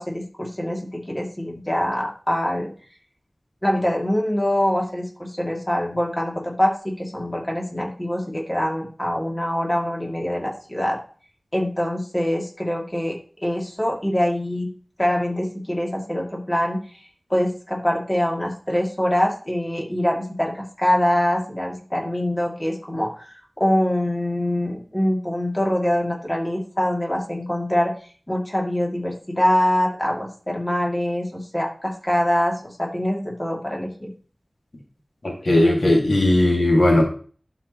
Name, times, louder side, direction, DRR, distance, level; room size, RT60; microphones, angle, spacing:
voice 1, 0.0-2.7 3.6-11.0 11.5-13.1 13.4-14.7 15.0-16.8 17.3-28.0 28.3-34.1, left 1 dB, 20° left, -1 dB, 2.5 m, -24 dB
voice 2, 35.2-37.0, left 1 dB, 70° left, -1 dB, 2.0 m, -17 dB
12.0 x 4.9 x 3.0 m, 0.40 s
wide cardioid pair, 55°, 0 cm